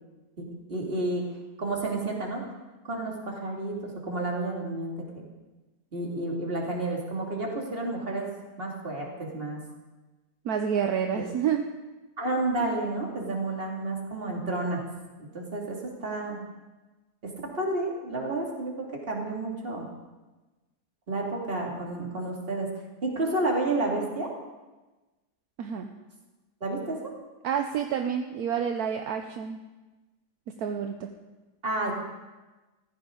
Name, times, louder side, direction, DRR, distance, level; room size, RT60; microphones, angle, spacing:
voice 1, 0.4-1.2 1.6-2.4 2.8-5.2 5.9-8.3 8.6-9.6 11.1-11.2 12.2-14.8 15.3-16.4 17.2-18.7 19.1-19.9 21.1-22.7 23.0-24.3 26.6-27.1 31.6-31.9, right 2 dB, 35° right, -1 dB, 2.6 m, -30 dB
voice 2, 10.4-11.6 25.6-25.9 27.4-29.7 30.5-31.1, right 8 dB, 70° right, 5 dB, 1.2 m, -29 dB
15.0 x 15.0 x 3.8 m, 1.2 s
omnidirectional pair, 1.7 m